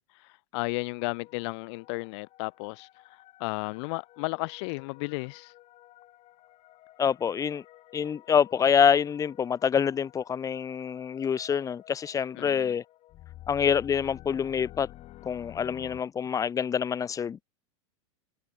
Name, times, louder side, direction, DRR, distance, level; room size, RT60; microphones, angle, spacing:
voice 1, 0.0-5.5 12.3-12.7, left 29 dB, 55° left, 0.9 m, -34 dB
sound 1, 0.6-16.0, left 15 dB, 40° left, 4.4 m, -51 dB
voice 2, 7.0-7.6 7.9-12.8 13.5-14.9 15.2-17.4, left 7 dB, 20° left, 1.6 m, -26 dB
supercardioid pair, 135°, 17 cm